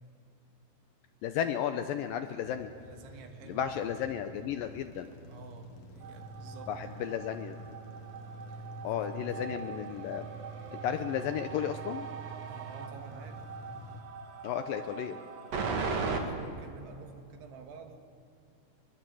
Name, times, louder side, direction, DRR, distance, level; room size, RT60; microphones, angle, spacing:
voice 1, 1.2-2.7 3.5-5.1 6.7-7.6 8.8-10.3 10.7-12.1 14.4-15.2, left 9 dB, 75° left, 8 dB, 2.2 m, -33 dB
sound 1, 2.4-14.0, right 2 dB, 50° left, 2.2 m, -47 dB
voice 2, 2.8-3.7 5.3-6.8 8.5-8.7 9.0-9.6 12.5-13.5 15.6-18.0, right 4 dB, 90° right, 5 dB, 3.8 m, -50 dB
sound 2, 6.0-16.2, right 5 dB, 45° right, 2.9 m, -39 dB
sound 3, 7.5-12.9, right 7 dB, 65° right, 3.1 m, -50 dB
23.0 x 22.5 x 7.8 m, 2.6 s
omnidirectional pair, 4.7 m